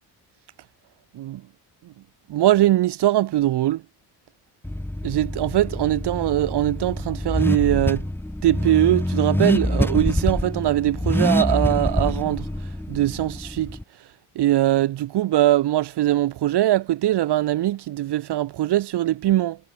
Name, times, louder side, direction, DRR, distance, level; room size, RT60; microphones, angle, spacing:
voice 1, 2.3-3.8 5.0-8.0 8.4-13.8 14.3-19.6, right 14 dB, 75° right, 1.6 m, -21 dB
Car / Accelerating revving vroom, 4.6-13.8, left 1 dB, 5° left, 1.6 m, -25 dB
cardioid pair, 100°, 41 cm